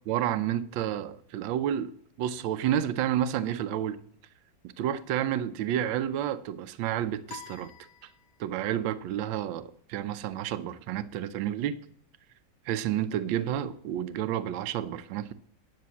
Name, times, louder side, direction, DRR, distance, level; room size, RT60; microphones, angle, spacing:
voice 1, 0.1-1.9 2.2-4.0 4.8-7.7 8.4-11.8 12.7-15.3, right 10 dB, 80° right, 1.4 m, -30 dB
sound 1, 7.3-8.7, left 6 dB, 65° left, 1.3 m, -48 dB
10.5 x 6.7 x 7.1 m
omnidirectional pair, 2.1 m